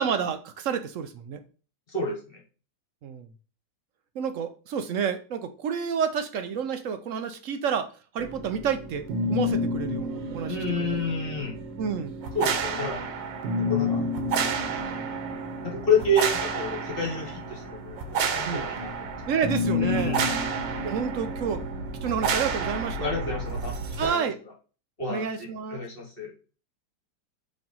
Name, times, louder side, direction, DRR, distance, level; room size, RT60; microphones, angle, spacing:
voice 1, 0.0-1.4 3.0-3.3 4.2-7.9 8.1-10.6 11.8-12.1 18.5-18.6 19.3-20.2 20.8-21.6 22.0-23.1 24.0-24.4 25.1-25.8, right 7 dB, 65° right, 8 dB, 0.8 m, -29 dB
voice 2, 1.9-2.4 10.5-11.6 12.3-13.0 13.6-14.0 15.6-19.1 19.8-20.4 23.0-24.3 25.0-26.3, left 2 dB, 35° left, 0 dB, 1.4 m, -29 dB
sound 1, 8.2-24.1, right 1 dB, 85° right, 1.6 m, -30 dB
5.1 x 3.5 x 5.3 m, 0.37 s
omnidirectional pair, 1.9 m